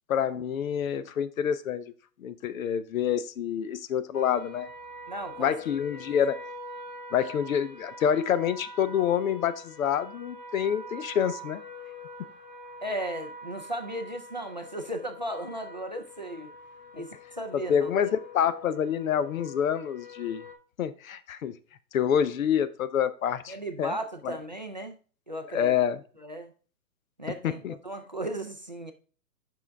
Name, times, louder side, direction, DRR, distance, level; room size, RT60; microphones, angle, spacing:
voice 1, 0.1-1.9 2.2-4.7 5.4-6.4 7.1-11.6 17.5-20.4 20.8-21.5 21.9-23.9 24.2-24.4 25.5-26.0 27.4-27.7, left 8 dB, 55° left, 14 dB, 0.7 m, -27 dB
sound 1, 4.1-20.5, equal, 85° left, 1.6 m, -45 dB
voice 2, 5.1-5.5 6.0-6.1 12.8-16.5 16.9-17.9 23.5-25.0 25.3-25.7 26.2-26.5 27.2-28.9, right 1 dB, 30° right, 3 dB, 0.4 m, -36 dB
7.5 x 5.7 x 3.4 m, 0.39 s
hypercardioid pair, 150°, 49 cm